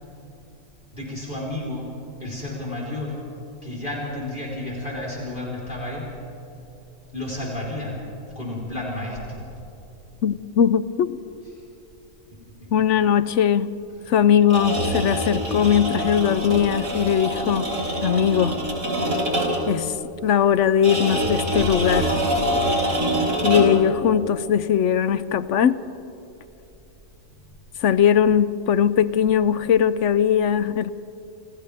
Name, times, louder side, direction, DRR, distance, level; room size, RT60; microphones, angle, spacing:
voice 1, 0.9-1.9 2.2-3.2 3.6-6.1 7.1-8.0 8.4-9.5 12.3-12.7, left 1 dB, 40° left, -4 dB, 4.2 m, -31 dB
voice 2, 10.2-11.2 12.7-13.8 14.1-17.6 18.0-18.6 19.7-19.9 20.2-22.1 23.4-25.8 27.8-30.9, left 8 dB, 70° left, 15 dB, 1.0 m, -20 dB
sound 1, 14.4-19.8 20.8-23.9, equal, 75° right, 3.6 m, -25 dB
28.5 x 28.5 x 3.5 m, 2.9 s
omnidirectional pair, 1.3 m